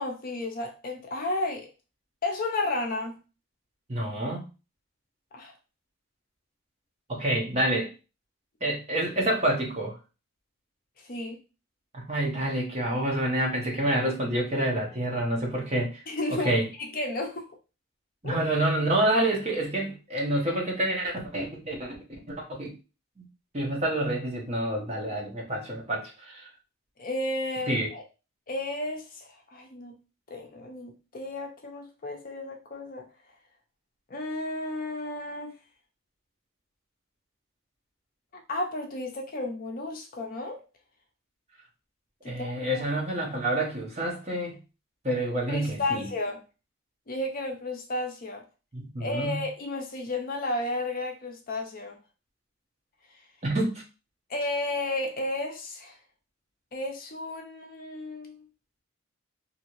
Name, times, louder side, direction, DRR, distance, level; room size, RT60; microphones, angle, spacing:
voice 1, 0.0-1.7 2.2-3.2 5.3-5.5 11.1-11.4 16.1-17.5 18.2-18.4 27.0-28.0 28.5-30.0 30.3-33.0 34.1-35.5 38.5-40.6 42.2-42.9 45.5-46.4 47.1-48.4 49.0-52.0 54.3-56.0 56.7-58.4, left 2 dB, 40° left, 2 dB, 0.5 m, -33 dB
voice 2, 3.9-4.4 7.1-7.9 8.6-9.9 11.9-16.0 16.3-16.7 18.2-21.9 22.3-22.7 23.5-26.5 27.7-27.9 42.2-44.6 45.0-46.1 48.7-49.4 53.4-53.8, right 1 dB, 30° right, -1 dB, 0.8 m, -28 dB
2.7 x 2.7 x 2.9 m, 0.31 s
head